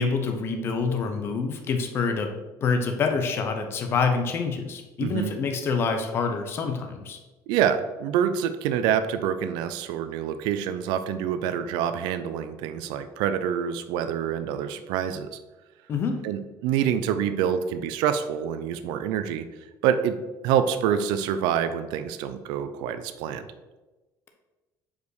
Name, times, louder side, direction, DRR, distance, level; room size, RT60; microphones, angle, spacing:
voice 1, 0.0-2.3 2.6-7.2 15.9-16.2, left 5 dB, 30° left, 5 dB, 0.8 m, -26 dB
voice 2, 5.0-5.3 7.5-15.4 16.2-19.4 19.8-20.2 20.4-23.4, right 9 dB, 85° right, 10 dB, 0.6 m, -26 dB
5.2 x 5.1 x 6.3 m, 1.1 s
cardioid pair, 175°, 7 cm